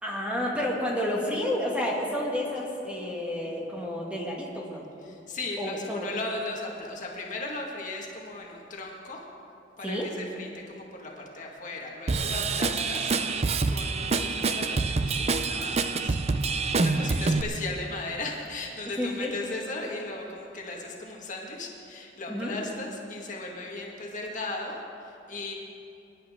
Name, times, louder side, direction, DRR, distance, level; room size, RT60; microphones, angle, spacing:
voice 1, 0.0-4.8 5.6-6.1 9.8-10.1 19.0-19.3 22.3-22.5, left 1 dB, 5° right, -3 dB, 2.1 m, -30 dB
voice 2, 5.0-9.2 9.8-25.5, left 2 dB, 45° left, -1 dB, 1.9 m, -37 dB
Drum kit / Drum, 12.1-17.4, right 4 dB, 35° right, 0.5 m, -26 dB
25.5 x 11.0 x 3.7 m, 2.7 s
head